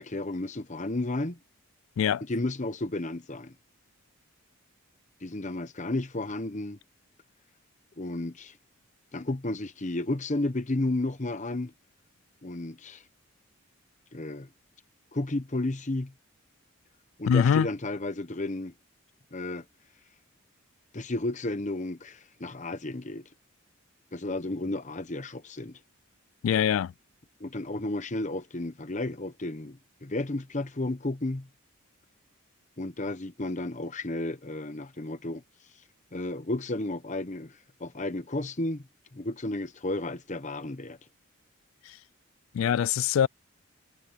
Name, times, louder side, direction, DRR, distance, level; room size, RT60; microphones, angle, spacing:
voice 1, 0.0-1.4 2.2-3.5 5.2-6.8 8.0-8.6 9.1-11.7 12.4-13.0 14.1-14.5 15.1-16.1 17.2-18.7 19.3-19.6 20.9-23.3 24.1-25.8 27.4-31.5 32.8-35.4 36.1-41.0, left 2 dB, 35° left, 1.0 m, -32 dB
voice 2, 17.3-17.7 26.4-26.9 41.9-42.0 42.5-43.3, left 8 dB, 70° left, 0.3 m, -23 dB
head